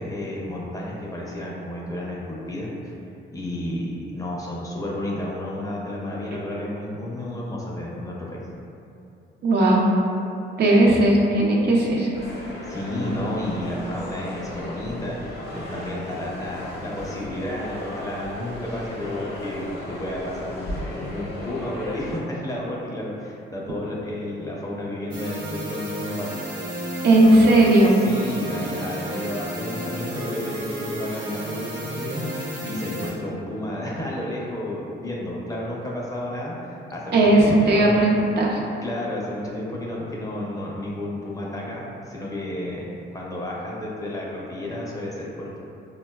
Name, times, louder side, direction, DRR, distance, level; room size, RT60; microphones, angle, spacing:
voice 1, 0.0-3.0 3.3-8.4 12.6-26.3 28.0-36.6 36.9-37.4 37.7-38.0 38.8-45.6, left 1 dB, 15° left, -4 dB, 0.5 m, -31 dB
voice 2, 9.4-9.9 10.6-12.1 27.0-28.0 37.1-38.6, right 1 dB, 55° right, -2 dB, 0.5 m, -17 dB
sound 1, 12.1-22.2, left 1 dB, 55° left, 0.7 m, -36 dB
sound 2, 25.1-33.1, right 1 dB, 85° right, 0.8 m, -32 dB
4.1 x 2.1 x 2.2 m, 2.6 s
cardioid pair, 90°, 20 cm